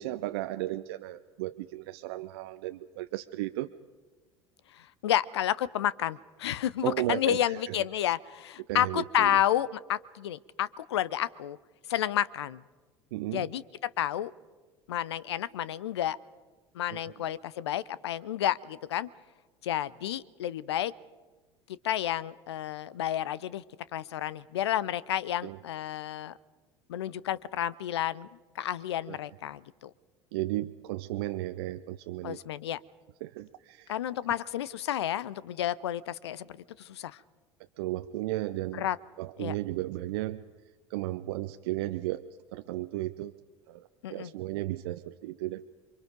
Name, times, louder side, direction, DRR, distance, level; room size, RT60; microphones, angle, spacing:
voice 1, 0.0-3.7 6.8-7.8 8.7-9.4 13.1-13.5 16.9-17.2 25.4-25.6 29.1-29.2 30.3-32.4 33.2-33.9 37.8-38.9 39.2-40.4 40.9-42.2 42.5-43.3 43.7-45.6, right 16 dB, 60° right, 9 dB, 0.7 m, -34 dB
voice 2, 4.7-11.6 11.9-12.6 13.3-13.6 14.0-14.3 14.9-16.2 16.7-19.1 19.6-20.9 21.8-23.6 23.9-26.4 26.9-28.3 28.6-29.9 32.2-32.8 33.9-37.2 38.7-39.0 39.4-39.5 44.0-44.3, left 11 dB, 70° left, 21 dB, 0.7 m, -31 dB
28.0 x 24.5 x 5.2 m, 1.3 s
figure-of-eight pair, 70°, 15 cm